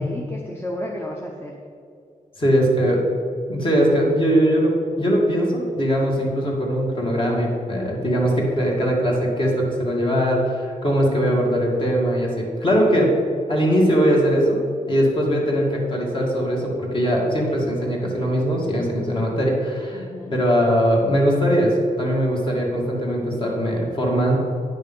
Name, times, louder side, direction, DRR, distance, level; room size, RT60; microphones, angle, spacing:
voice 1, 0.0-1.6 19.9-20.4, left 1 dB, 15° left, -1 dB, 0.8 m, -32 dB
voice 2, 2.4-3.0 3.5-13.1 13.5-14.6 14.9-20.0 20.3-24.4, equal, 40° left, -2 dB, 2.1 m, -20 dB
9.9 x 6.3 x 5.5 m, 2.4 s
wide cardioid pair, 130°, 14 cm